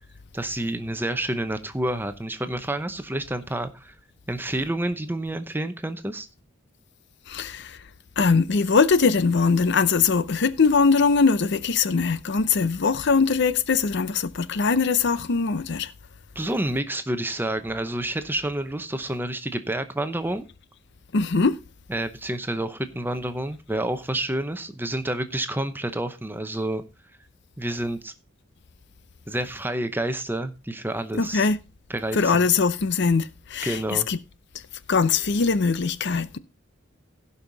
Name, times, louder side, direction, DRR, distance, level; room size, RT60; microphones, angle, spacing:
voice 1, 0.3-3.9 4.3-6.3 16.3-20.4 21.9-26.8 27.6-28.1 29.3-31.5 31.9-32.2 33.6-34.1, right 1 dB, 10° right, 0.8 m, -29 dB
voice 2, 7.3-7.9 8.2-15.9 21.1-21.6 31.1-31.6 32.1-34.2 34.5-34.6 34.9-36.4, left 4 dB, 55° left, 0.6 m, -21 dB
16.5 x 5.6 x 4.0 m
head